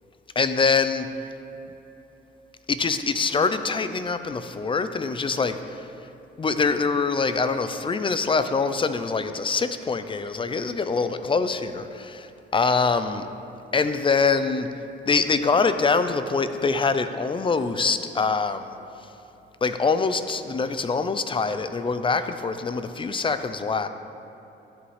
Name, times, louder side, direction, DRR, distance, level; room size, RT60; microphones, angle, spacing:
voice 1, 0.4-1.1 2.7-5.9 6.4-13.3 13.7-14.7 15.0-18.8 19.6-23.9, left 4 dB, 25° left, 10 dB, 0.5 m, -24 dB
11.5 x 7.7 x 3.3 m, 3.0 s
cardioid pair, 90°, 20 cm